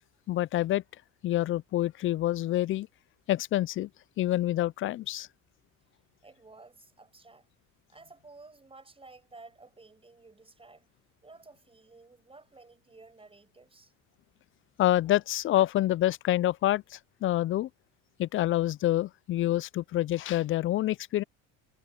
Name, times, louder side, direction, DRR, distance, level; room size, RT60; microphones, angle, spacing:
voice 1, 0.3-0.8 1.2-2.9 3.3-3.9 4.2-5.3 14.8-17.7 18.2-21.2, left 14 dB, 40° left, 0.4 m, -27 dB
voice 2, 6.2-7.5 7.9-10.9 11.2-13.9, right 3 dB, 15° right, 6.6 m, -53 dB
supercardioid pair, 100°, 34 cm